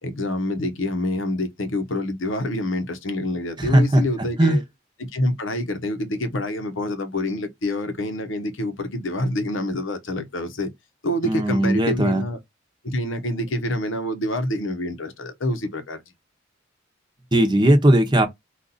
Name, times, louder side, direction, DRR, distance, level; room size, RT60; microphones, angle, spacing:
voice 1, 0.0-4.6 5.0-10.7 11.0-12.4 12.8-16.0, left 1 dB, 80° left, 0.9 m, -27 dB
voice 2, 3.6-4.0 4.4-4.6 11.2-12.2 17.3-18.3, right 1 dB, 25° right, 0.8 m, -17 dB
4.1 x 2.5 x 4.0 m
head